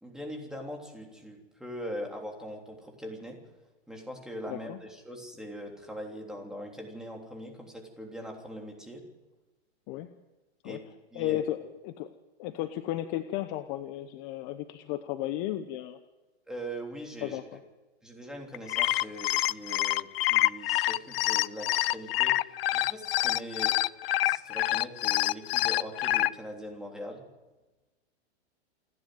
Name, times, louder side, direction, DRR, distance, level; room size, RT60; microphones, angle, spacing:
voice 1, 0.0-3.4 3.9-9.0 10.6-10.8 11.1-11.4 16.5-17.6 18.0-22.4 22.7-23.8 24.2-27.2, equal, ahead, 1 dB, 3.3 m, -41 dB
voice 2, 4.5-4.8 9.9-10.1 10.6-10.8 11.1-12.1 12.4-16.0 17.2-17.6, left 13 dB, 35° left, 9 dB, 1.0 m, -34 dB
sound 1, 18.5-26.3, left 15 dB, 60° left, 0.6 m, -26 dB
28.5 x 10.5 x 9.3 m, 1.1 s
hypercardioid pair, 145°, 34 cm